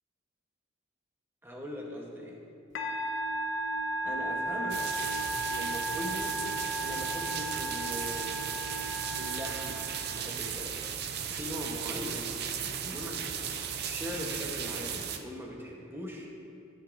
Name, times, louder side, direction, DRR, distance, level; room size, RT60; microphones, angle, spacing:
voice 1, 1.4-2.4 4.1-4.9 5.5-6.4 6.8-8.7 9.1-10.9 11.2-16.3, equal, 10° right, -1 dB, 1.1 m, -41 dB
Musical instrument, 2.7-10.4, right 1 dB, 65° left, 1.0 m, -35 dB
sound 1, 4.7-15.2, right 8 dB, 55° right, 0.5 m, -36 dB
13.0 x 8.1 x 2.6 m, 2.6 s
head